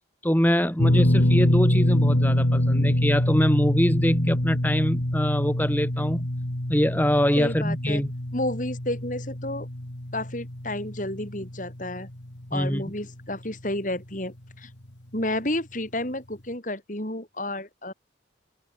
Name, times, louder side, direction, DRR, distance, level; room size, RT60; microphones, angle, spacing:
voice 1, 0.2-6.3 6.7-8.1 12.5-12.8, equal, 10° left, 2.9 m, -24 dB
sound 1, 0.8-13.0 13.3-13.5 15.2-15.3, left 1 dB, 70° left, 3.0 m, -25 dB
voice 2, 7.4-8.0 8.3-9.7 10.1-12.1 12.5-14.7 15.1-17.9, left 1 dB, 45° left, 4.6 m, -31 dB
head